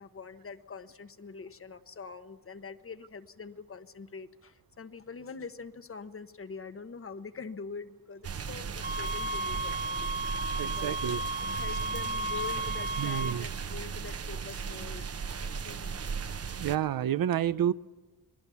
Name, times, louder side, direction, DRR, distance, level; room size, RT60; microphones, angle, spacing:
voice 1, 0.0-10.1 10.7-11.2 11.6-15.1 15.4-16.0, left 5 dB, 40° left, 10 dB, 1.3 m, -44 dB
sound 1, 8.2-16.8, right 6 dB, 45° right, 1.0 m, -37 dB
sound 2, 8.8-13.4, right 1 dB, 20° right, 1.3 m, -34 dB
voice 2, 10.6-11.2 11.5-11.6 13.0-13.5 16.6-17.7, right 10 dB, 80° right, 15 dB, 0.7 m, -29 dB
27.5 x 21.5 x 7.1 m, 1.3 s
wide cardioid pair, 130°, 34 cm